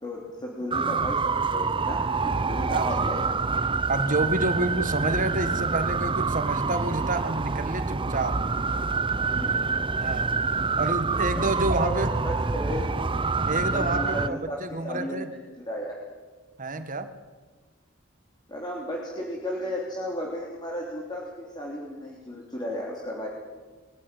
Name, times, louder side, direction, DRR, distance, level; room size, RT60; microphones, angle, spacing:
voice 1, 0.0-3.4 9.3-9.9 11.3-11.5 11.7-12.9 13.7-14.6 14.8-15.3 15.7-15.9 18.5-23.3, left 1 dB, 20° left, -3 dB, 3.3 m, -34 dB
sound 1, 0.7-14.3, right 4 dB, 25° right, 0.6 m, -26 dB
voice 2, 3.9-8.4 10.0-10.3 10.8-12.1 13.5-15.3 16.6-17.1, right 2 dB, 40° right, 10 dB, 1.7 m, -28 dB
22.5 x 15.0 x 9.2 m, 1.3 s
head